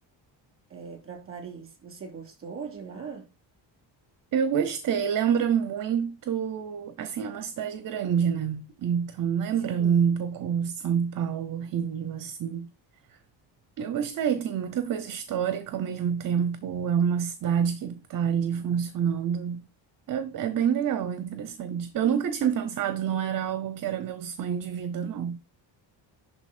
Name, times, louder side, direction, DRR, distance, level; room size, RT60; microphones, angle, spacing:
voice 1, 0.7-3.3 9.6-10.0 23.1-23.4, right 5 dB, 30° right, 3.0 m, -41 dB
voice 2, 4.3-12.7 13.8-19.6 20.1-25.4, right 8 dB, 50° right, 0.8 m, -27 dB
11.0 x 4.0 x 4.3 m
cardioid pair, 170°, 44 cm